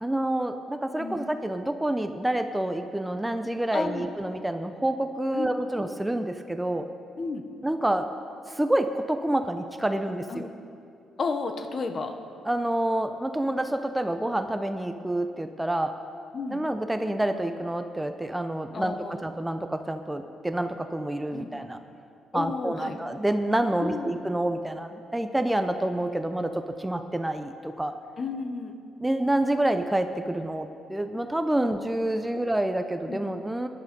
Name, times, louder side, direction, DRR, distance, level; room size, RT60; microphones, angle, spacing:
voice 1, 0.0-6.9 7.6-8.1 8.5-10.5 12.5-15.9 16.5-21.8 22.3-27.9 29.0-33.7, right 1 dB, 10° right, 8 dB, 0.6 m, -28 dB
voice 2, 3.7-4.1 5.3-5.5 7.2-7.4 10.3-10.4 11.2-12.2 16.3-16.6 18.7-19.2 21.3-21.5 22.3-23.0 23.8-24.1 28.2-28.8 32.3-32.4 33.1-33.2, left 4 dB, 45° left, 7 dB, 1.1 m, -32 dB
15.5 x 11.0 x 5.3 m, 2.5 s
cardioid pair, 90°, 0 cm